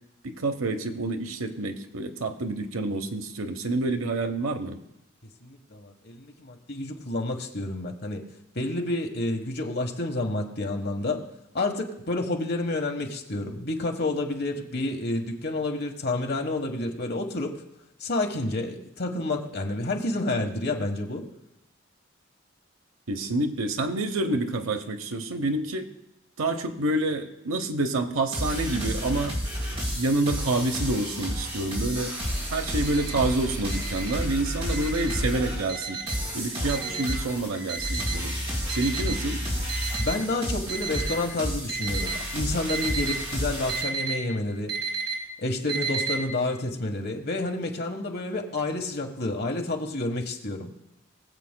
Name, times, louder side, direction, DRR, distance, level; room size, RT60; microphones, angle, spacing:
voice 1, 0.2-4.8 23.1-25.9 26.4-29.4 29.9-32.1 32.5-36.0 36.3-38.3 38.7-39.4, right 2 dB, 80° right, 7 dB, 0.9 m, -28 dB
voice 2, 5.4-8.2 8.5-11.2 11.5-17.5 18.0-21.2 39.0-39.1 40.0-44.7 45.4-50.7, left 2 dB, 50° left, 3 dB, 1.3 m, -29 dB
sound 1, 28.3-43.8, equal, 25° right, 4.0 m, -31 dB
Alarm, 32.8-33.1 33.7-34.1 34.7-35.1 35.7-36.1 36.7-37.1 37.7-38.2 38.7-39.2 39.7-40.2 40.7-41.2 41.7-42.2 42.7-43.1 43.7-44.1 44.7-45.1 45.7-46.1, right 5 dB, 50° right, 2.5 m, -32 dB
20.5 x 7.7 x 2.2 m, 0.89 s
head